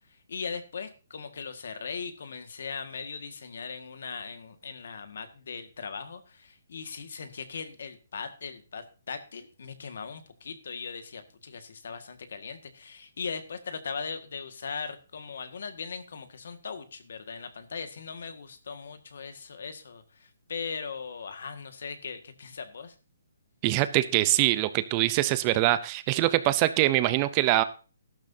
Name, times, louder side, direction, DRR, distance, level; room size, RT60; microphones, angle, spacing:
voice 1, 0.3-23.0, left 5 dB, 65° left, 9 dB, 1.8 m, -39 dB
voice 2, 23.6-27.6, right 16 dB, 20° right, 14 dB, 0.6 m, -24 dB
13.5 x 11.5 x 2.8 m, 0.35 s
hypercardioid pair, 165°, 0 cm